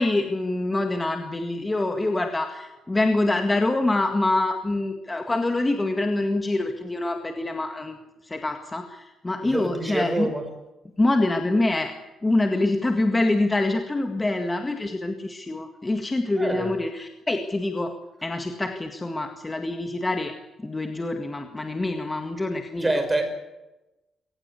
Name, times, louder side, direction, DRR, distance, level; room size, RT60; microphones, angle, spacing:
voice 1, 0.0-8.0 8.2-10.3 11.0-11.9 12.2-17.9 18.2-20.3 20.6-23.0, left 2 dB, 15° left, 5 dB, 1.9 m, -25 dB
voice 2, 9.4-10.4 16.4-16.7 22.8-23.3, right 2 dB, 15° right, 7 dB, 5.2 m, -26 dB
24.0 x 18.0 x 8.4 m, 0.99 s
cardioid pair, 140°, 0 cm